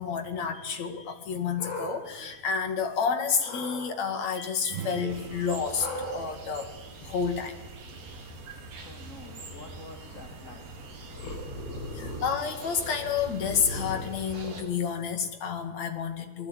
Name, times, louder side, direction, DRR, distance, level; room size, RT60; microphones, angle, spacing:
voice 1, 0.0-6.7 7.0-7.5 11.9-16.5, left 6 dB, 45° left, 3.0 m, -30 dB
sound 1, 1.2-2.9 3.4-3.9 5.7-15.2, left 1 dB, 80° left, 7.4 m, -41 dB
sound 2, 4.6-8.4, right 10 dB, 80° right, 3.2 m, -44 dB
sound 3, 5.1-14.6, right 4 dB, 60° right, 5.5 m, -45 dB
voice 2, 8.2-12.1, left 2 dB, 20° left, 2.4 m, -50 dB
27.5 x 19.5 x 9.3 m
omnidirectional pair, 5.0 m